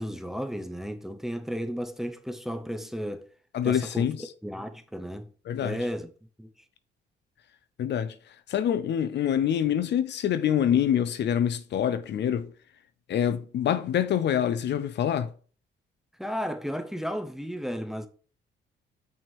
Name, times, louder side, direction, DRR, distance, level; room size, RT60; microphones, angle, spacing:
voice 1, 0.0-3.3 3.6-4.1 4.4-5.3 5.6-6.1 6.4-6.5 16.2-18.1, equal, ahead, 0.8 m, -33 dB
voice 2, 3.5-4.3 5.5-5.8 7.8-12.5 13.1-15.3, left 9 dB, 60° left, 0.6 m, -26 dB
5.9 x 3.5 x 4.6 m
cardioid pair, 90°, 20 cm